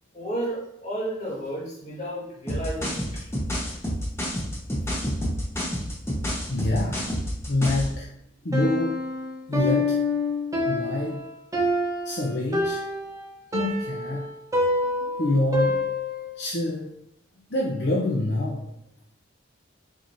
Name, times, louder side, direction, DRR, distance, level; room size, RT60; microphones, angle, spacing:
voice 1, 0.1-3.3, right 1 dB, 35° left, -3 dB, 1.7 m, -32 dB
sound 1, 2.5-7.9, equal, 15° left, 1.1 m, -28 dB
voice 2, 6.2-7.0 7.5-8.1 8.4-9.0 9.5-10.0 10.7-11.2 12.0-12.8 13.5-14.3 14.8-15.8 16.4-16.9 17.5-18.7, left 2 dB, 60° left, -2 dB, 0.8 m, -26 dB
Piano, 8.5-16.4, left 1 dB, 15° right, 0.9 m, -27 dB
7.5 x 4.9 x 2.7 m, 0.73 s
head